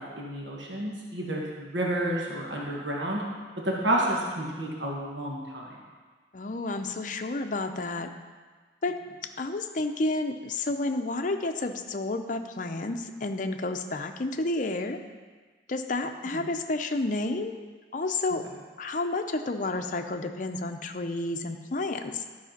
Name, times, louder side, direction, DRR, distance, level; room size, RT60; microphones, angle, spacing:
voice 1, 0.0-3.2 3.6-5.8 16.3-16.5, right 1 dB, 85° right, -3 dB, 1.5 m, -30 dB
voice 2, 6.3-8.1 8.8-9.0 9.4-15.0 15.7-17.5 17.9-18.4 18.8-22.2, left 2 dB, 45° left, 6 dB, 0.6 m, -30 dB
12.0 x 4.9 x 5.8 m, 1.5 s
head